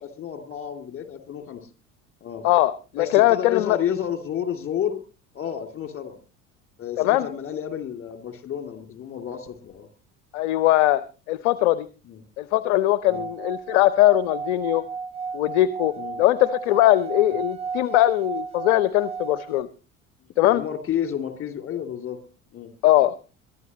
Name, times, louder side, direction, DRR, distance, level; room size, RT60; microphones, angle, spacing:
voice 1, 0.0-1.7 2.2-2.4 2.9-5.0 5.3-6.2 6.8-9.9 12.0-12.2 13.1-13.2 16.0-16.2 20.5-22.2 22.5-22.7, left 9 dB, 30° left, 6 dB, 2.9 m, -31 dB
voice 2, 2.4-3.8 7.0-7.3 10.3-11.0 11.3-11.9 12.4-14.8 15.3-15.9 16.2-19.7 20.4-20.6 22.8-23.1, left 15 dB, 55° left, 16 dB, 0.8 m, -20 dB
Singing / Glass, 13.0-19.6, right 5 dB, 15° right, 0.7 m, -34 dB
22.5 x 12.5 x 3.0 m, 0.34 s
figure-of-eight pair, 60°, 41 cm